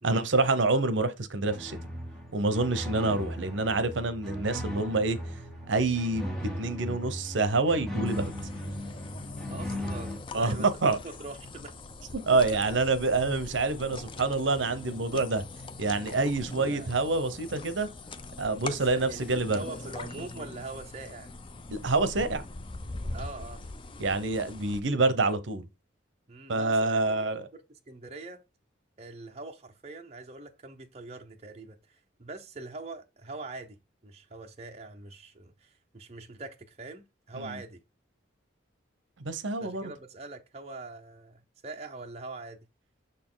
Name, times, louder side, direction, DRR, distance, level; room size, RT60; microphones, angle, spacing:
voice 1, 0.0-1.8 2.3-5.2 5.7-8.3 10.3-11.0 12.1-15.4 15.8-17.9 18.4-19.6 21.7-22.4 24.0-25.7 26.5-27.4 37.3-37.6 39.2-39.9, right 3 dB, 75° right, 0.8 m, -27 dB
sound 1, 1.4-10.2, equal, 5° left, 1.2 m, -37 dB
sound 2, 8.1-24.8, left 2 dB, 25° left, 0.4 m, -42 dB
voice 2, 9.5-10.7 11.0-11.8 16.6-17.0 18.7-21.3 23.1-23.6 26.3-28.4 29.0-33.8 34.0-37.8 39.6-42.6, right 3 dB, 35° right, 0.7 m, -43 dB
6.5 x 4.2 x 3.8 m
head